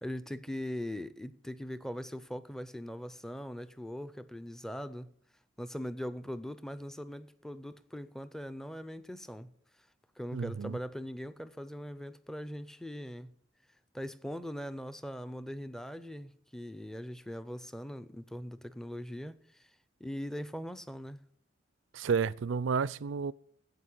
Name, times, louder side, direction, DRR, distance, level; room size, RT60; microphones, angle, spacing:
voice 1, 0.0-5.1 5.6-9.5 10.2-13.3 13.9-19.7 20.0-21.2, equal, 5° left, 0.5 m, -41 dB
voice 2, 10.3-10.8 21.9-23.3, right 6 dB, 85° right, 0.4 m, -31 dB
9.4 x 8.2 x 8.6 m
head